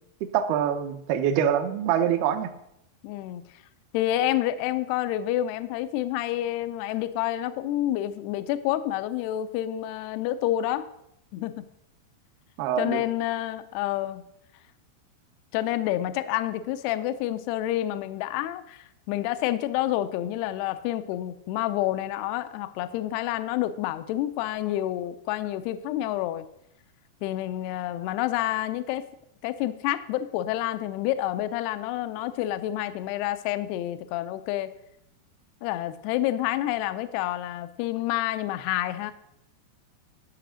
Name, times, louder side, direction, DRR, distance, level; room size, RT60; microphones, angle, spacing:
voice 1, 0.2-2.5 12.6-13.0, right 9 dB, 75° right, 6 dB, 2.5 m, -25 dB
voice 2, 3.0-3.4 3.9-10.8 11.3-11.7 12.8-14.2 15.5-26.5 27.2-29.0 29.4-34.7 35.6-39.1, left 13 dB, 80° left, 12 dB, 2.5 m, -28 dB
13.0 x 5.9 x 6.3 m, 0.78 s
omnidirectional pair, 5.0 m